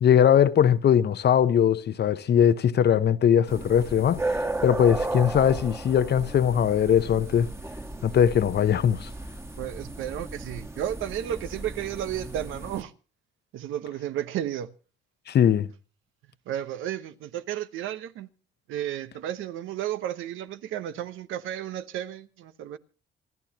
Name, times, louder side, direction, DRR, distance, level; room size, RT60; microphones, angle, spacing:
voice 1, 0.0-7.5 8.0-9.1 15.3-15.7, left 9 dB, 55° left, 0.9 m, -21 dB
sound 1, 3.5-12.8, right 2 dB, 15° right, 1.5 m, -35 dB
voice 2, 9.6-12.9 13.5-14.7 16.5-18.3 18.7-22.8, right 11 dB, 90° right, 1.0 m, -33 dB
27.5 x 11.0 x 2.9 m
cardioid pair, 90°, 20 cm